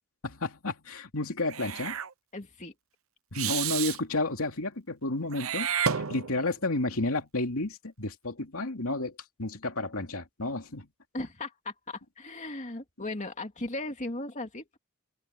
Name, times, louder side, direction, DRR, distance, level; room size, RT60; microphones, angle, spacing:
voice 1, 0.2-2.0 3.3-10.9, left 2 dB, 75° left, 2.8 m, -32 dB
Meow / Hiss, 1.5-2.1 3.3-4.0 5.3-6.5, right 8 dB, 70° right, 1.0 m, -31 dB
voice 2, 2.3-2.7 11.1-14.8, left 2 dB, 35° left, 2.4 m, -37 dB
open air
head